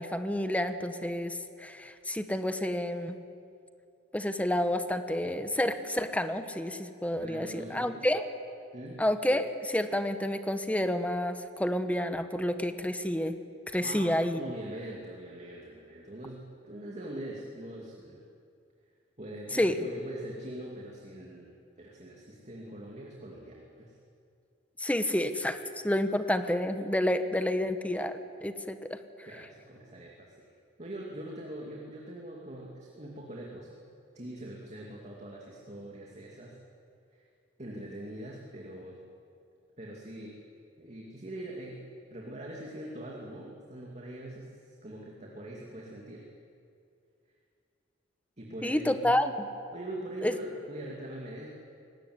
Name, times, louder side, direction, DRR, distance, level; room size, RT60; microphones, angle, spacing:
voice 1, 0.0-3.2 4.1-8.3 9.0-13.4 13.7-14.4 19.5-19.8 24.8-25.6 25.8-29.0 48.6-49.5 50.2-50.3, left 1 dB, 5° left, 9 dB, 1.1 m, -29 dB
voice 2, 7.2-8.1 8.7-9.0 13.8-18.2 19.2-21.5 21.8-24.0 29.2-30.5 30.8-33.7 34.1-36.5 37.1-37.2 37.6-39.0 39.8-40.3 40.8-41.8 42.1-44.5 44.8-46.2 48.4-49.1 49.7-51.5, right 1 dB, 35° right, -2 dB, 2.6 m, -42 dB
22.0 x 18.5 x 9.7 m, 2.5 s
head